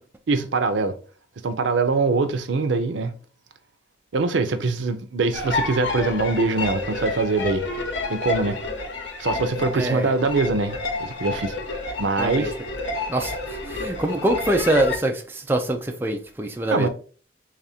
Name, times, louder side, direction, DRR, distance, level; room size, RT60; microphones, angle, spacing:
voice 1, 0.3-1.0 1.4-3.1 4.1-7.6 8.1-8.6 9.2-11.5 12.0-12.5 16.7-16.9, right 3 dB, 85° right, 0.5 m, -23 dB
sound 1, 5.3-15.0, left 3 dB, 90° left, 0.8 m, -30 dB
voice 2, 9.7-10.1 12.2-12.5 13.1-13.3 13.7-16.9, right 1 dB, 10° right, 0.4 m, -24 dB
3.3 x 2.5 x 4.1 m
head